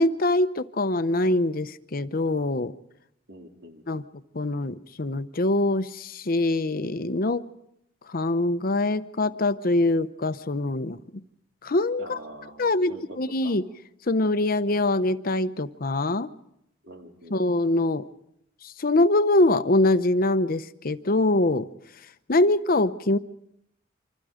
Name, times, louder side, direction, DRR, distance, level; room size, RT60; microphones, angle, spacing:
voice 1, 0.0-2.7 3.9-4.0 4.3-7.4 8.1-11.2 11.6-12.2 12.6-13.7 14.1-16.3 17.3-18.1 18.6-21.7 22.3-23.2, left 2 dB, 50° left, 12 dB, 0.9 m, -24 dB
voice 2, 3.3-4.0 12.0-13.2 13.4-13.5 16.8-17.4, right 1 dB, 80° right, 2 dB, 3.7 m, -44 dB
28.0 x 25.5 x 5.1 m, 0.77 s
head